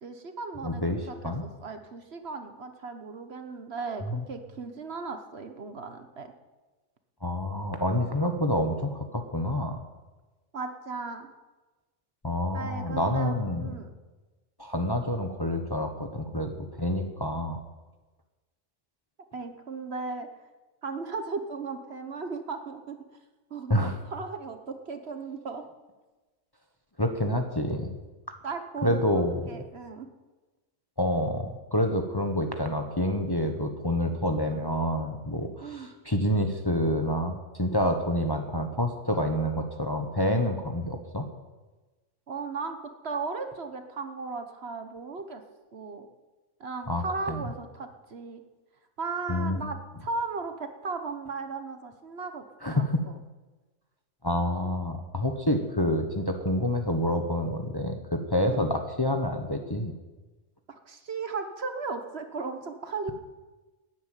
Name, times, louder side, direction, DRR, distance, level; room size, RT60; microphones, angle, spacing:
voice 1, 0.0-6.3 10.5-11.3 12.5-13.9 19.3-20.3 20.8-23.1 23.5-25.7 28.4-30.1 35.6-35.9 42.3-45.4 45.7-46.1 46.6-48.4 49.0-52.4 52.7-53.2 58.4-58.6 60.7-63.1, right 4 dB, 55° right, 7 dB, 1.4 m, -36 dB
voice 2, 0.6-1.4 4.0-4.2 7.2-9.8 12.2-13.7 14.6-16.5 16.8-17.6 23.7-24.0 27.0-27.9 28.8-29.5 31.0-41.3 46.9-47.4 49.3-49.6 52.6-53.0 54.2-59.9, left 1 dB, 20° left, 4 dB, 1.1 m, -28 dB
12.5 x 10.5 x 9.2 m, 1.2 s
omnidirectional pair, 1.4 m